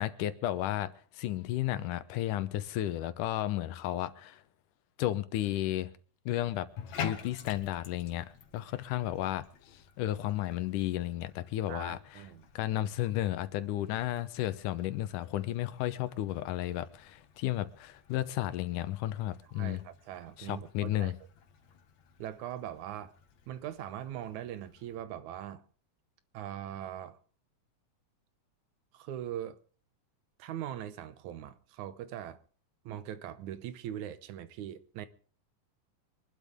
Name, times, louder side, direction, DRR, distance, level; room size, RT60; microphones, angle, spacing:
voice 1, 0.0-4.4 5.0-5.9 6.3-6.7 7.0-9.5 9.7-12.2 12.6-19.8 20.4-21.2, left 13 dB, 85° left, 2.4 m, -33 dB
Bathtub (filling or washing), 6.7-25.0, left 8 dB, 65° left, 2.7 m, -49 dB
voice 2, 11.7-12.5 19.5-21.1 22.2-23.1 23.5-25.6 26.3-27.2 28.9-29.6 30.4-32.4 32.9-35.1, right 11 dB, 75° right, 2.2 m, -41 dB
25.0 x 12.0 x 3.6 m
omnidirectional pair, 3.6 m